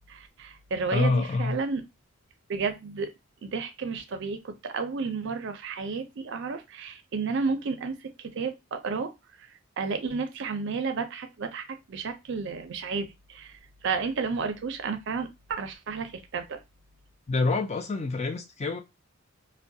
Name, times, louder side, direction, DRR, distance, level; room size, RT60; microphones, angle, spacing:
voice 1, 0.1-1.8 2.5-3.1 3.4-9.1 9.4-9.5 9.8-16.6, right 4 dB, 55° right, 0.4 m, -32 dB
voice 2, 0.9-1.6 17.3-18.8, left 3 dB, 30° left, 0.4 m, -26 dB
2.3 x 2.1 x 2.6 m
head